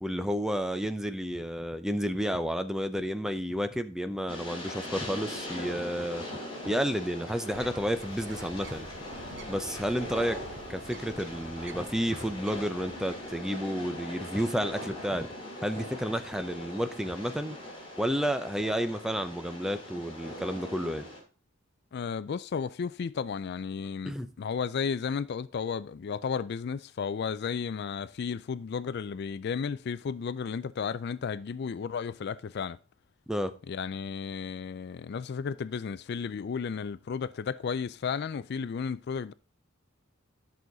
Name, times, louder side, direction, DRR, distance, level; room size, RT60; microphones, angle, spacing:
voice 1, 0.0-6.2 6.7-8.9 9.5-10.4 10.7-15.3 15.6-17.6 18.0-21.1 24.0-24.3 33.3-33.5, equal, 5° right, 0.6 m, -31 dB
Train, 4.3-21.2, left 1 dB, 25° left, 3.6 m, -41 dB
Bird, 7.5-13.5, right 3 dB, 60° right, 0.9 m, -49 dB
voice 2, 21.9-32.8 33.7-39.3, left 6 dB, 55° left, 0.3 m, -33 dB
11.0 x 6.3 x 3.9 m
head